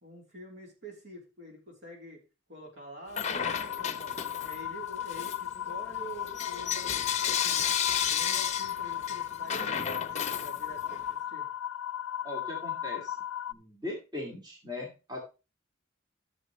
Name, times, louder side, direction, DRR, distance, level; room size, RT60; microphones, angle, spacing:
voice 1, 0.0-2.2 2.5-4.2 4.4-7.6 8.0-11.5, right 1 dB, 60° right, 0 dB, 3.6 m, -47 dB
Bell / Coin (dropping), 3.1-4.7 5.1-11.0, left 8 dB, 35° left, 0.8 m, -32 dB
sound 1, 3.4-13.5, left 10 dB, 85° left, 0.4 m, -36 dB
voice 2, 12.2-13.1 13.5-15.2, left 2 dB, 20° right, -1 dB, 2.3 m, -39 dB
13.5 x 6.7 x 3.1 m, 0.29 s
head